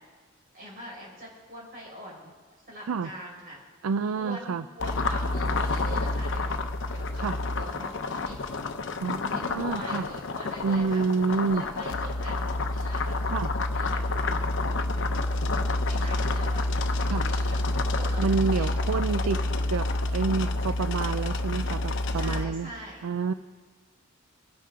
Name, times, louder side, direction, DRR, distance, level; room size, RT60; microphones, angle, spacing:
voice 1, 0.5-2.3 2.7-3.6 4.1-6.6 6.9-8.4 9.3-11.0 11.5-12.4 12.6-13.2 13.7-14.0 14.9-15.0 15.8-18.8 22.1-23.0, right 1 dB, 45° right, -4 dB, 5.5 m, -43 dB
voice 2, 3.8-4.6 7.1-7.4 9.0-10.1 10.6-11.6 13.3-13.5 17.1-17.3 18.2-19.4 19.7-22.7 23.0-23.3, right 5 dB, 90° right, 12 dB, 0.4 m, -28 dB
sound 1, 4.8-22.4, left 2 dB, 60° left, 0.8 m, -28 dB
25.0 x 10.0 x 3.8 m, 1.4 s
head